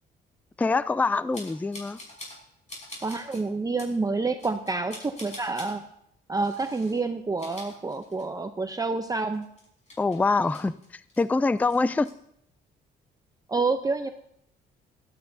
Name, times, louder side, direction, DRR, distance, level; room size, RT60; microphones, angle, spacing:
voice 1, 0.6-2.0 10.0-10.7 11.2-12.1, left 3 dB, 10° left, 16 dB, 0.3 m, -24 dB
sound 1, 1.3-2.4 2.7-3.4 3.8-3.9 4.4-5.8 6.4-7.0 7.3-8.5 8.8-8.9 9.3-11.2 11.6-12.1, left 1 dB, 35° left, 6.1 m, -45 dB
voice 2, 3.0-5.8 6.3-9.5 13.5-14.1, right 3 dB, 20° right, 7 dB, 0.7 m, -28 dB
17.0 x 12.5 x 2.7 m, 0.73 s
cardioid pair, 90°, 20 cm